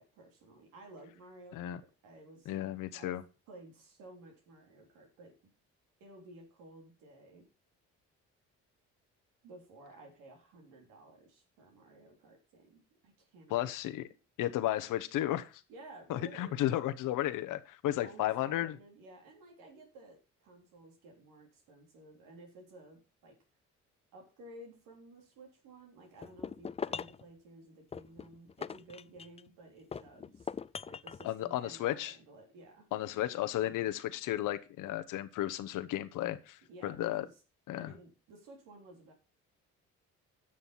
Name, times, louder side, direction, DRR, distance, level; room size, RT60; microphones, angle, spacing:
voice 1, 0.0-5.4 6.0-7.5 9.4-13.7 15.7-16.7 18.0-23.4 24.1-30.5 30.9-32.9 33.6-33.9 36.7-37.4 37.8-39.1, right 2 dB, 85° right, 2 dB, 3.5 m, -54 dB
voice 2, 2.5-3.2 13.5-14.1 14.4-15.6 16.1-18.8 31.2-32.1 32.9-37.2 37.7-37.9, left 13 dB, 75° left, 12 dB, 1.2 m, -34 dB
sound 1, 26.2-27.2 27.9-29.5 29.9-31.3, left 6 dB, 20° left, 0.4 m, -41 dB
10.0 x 6.4 x 5.7 m, 0.33 s
cardioid pair, 80°, 31 cm